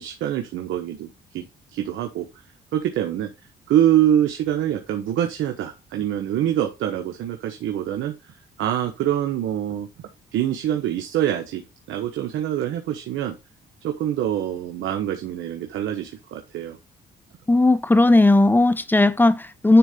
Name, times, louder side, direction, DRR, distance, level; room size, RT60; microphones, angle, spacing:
voice 1, 0.0-2.3 2.7-3.3 3.7-9.9 10.3-11.6 11.9-13.4 13.8-16.8, right 11 dB, 85° right, 1.1 m, -25 dB
voice 2, 17.5-19.8, left 2 dB, 10° left, 0.7 m, -16 dB
10.0 x 3.8 x 3.6 m
cardioid pair, 90°, 20 cm